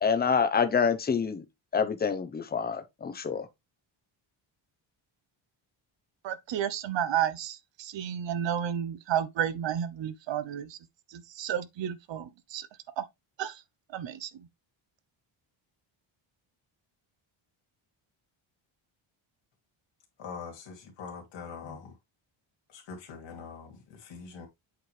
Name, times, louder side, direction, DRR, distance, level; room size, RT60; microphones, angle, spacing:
voice 1, 0.0-1.4 1.7-3.5, left 6 dB, 20° left, 0.8 m, -27 dB
voice 2, 6.2-10.8 11.1-12.7 13.0-13.1 13.4-13.6 13.9-14.5, right 10 dB, 60° right, 0.9 m, -32 dB
voice 3, 20.2-21.9 22.7-24.5, left 5 dB, 60° left, 2.6 m, -43 dB
7.9 x 4.5 x 3.3 m
cardioid pair, 165°, 49 cm